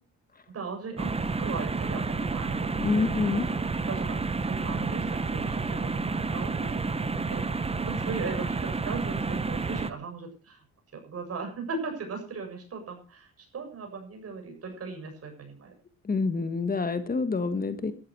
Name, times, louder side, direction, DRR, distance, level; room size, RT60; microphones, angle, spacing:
voice 1, 0.5-10.6 10.9-15.7, right 4 dB, 50° right, 3 dB, 7.2 m, -38 dB
sound 1, 1.0-9.9, right 4 dB, 20° right, 1.1 m, -30 dB
voice 2, 2.8-3.5 16.1-17.9, left 4 dB, 30° left, 10 dB, 1.6 m, -27 dB
13.5 x 13.0 x 4.7 m, 0.40 s
cardioid pair, 90°, 30 cm